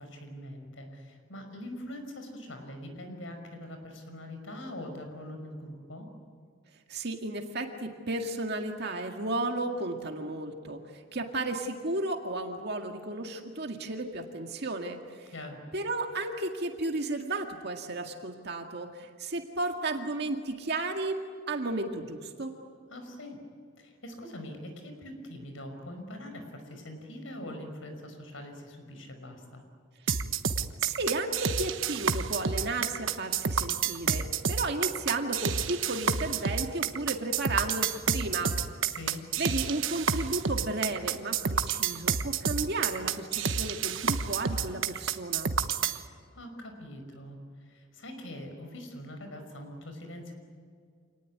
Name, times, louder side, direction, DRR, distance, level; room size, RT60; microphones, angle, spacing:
voice 1, 0.0-6.1 15.3-15.6 22.9-23.4 23.8-29.6 38.8-39.2 45.9-50.3, left 1 dB, 80° left, 6 dB, 5.4 m, -43 dB
voice 2, 6.9-15.3 15.7-22.5 30.8-38.6 39.4-45.5, right 2 dB, 55° right, 4 dB, 2.0 m, -33 dB
sound 1, 30.1-46.0, right 6 dB, 90° right, 1.2 m, -29 dB
28.0 x 19.5 x 9.5 m, 2.1 s
head